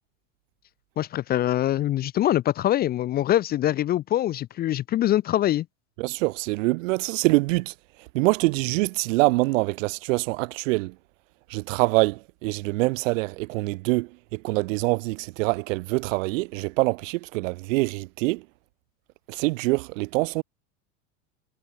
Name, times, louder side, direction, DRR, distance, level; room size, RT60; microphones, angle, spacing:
voice 1, 1.0-5.7, left 13 dB, 25° left, 0.4 m, -24 dB
voice 2, 6.0-7.7 8.1-10.9 11.5-18.4 19.3-20.4, right 23 dB, 75° right, 0.8 m, -25 dB
supercardioid pair, 120°, 39 cm